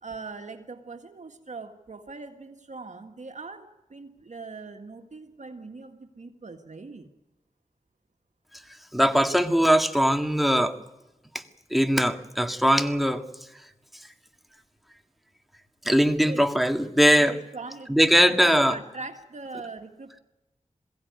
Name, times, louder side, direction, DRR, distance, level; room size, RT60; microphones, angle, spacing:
voice 1, 0.0-7.1 16.3-16.5 17.2-18.2 18.4-20.2, right 3 dB, 65° right, 6 dB, 1.8 m, -41 dB
voice 2, 8.9-10.8 11.3-11.4 11.7-13.2 15.8-17.3 17.9-18.7, equal, ahead, 6 dB, 2.0 m, -21 dB
22.0 x 16.0 x 9.6 m, 0.98 s
wide cardioid pair, 65°, 13 cm